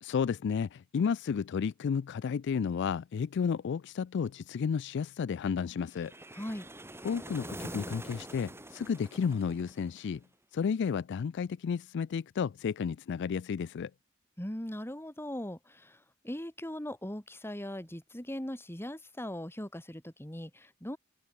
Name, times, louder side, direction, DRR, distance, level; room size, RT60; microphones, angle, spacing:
voice 1, 0.0-6.1 7.0-10.2 10.5-13.9, left 6 dB, 60° left, 0.3 m, -32 dB
sound 1, 5.9-10.2, right 1 dB, 10° right, 6.0 m, -45 dB
voice 2, 6.3-6.7 14.4-21.0, left 1 dB, 10° left, 2.8 m, -40 dB
open air
head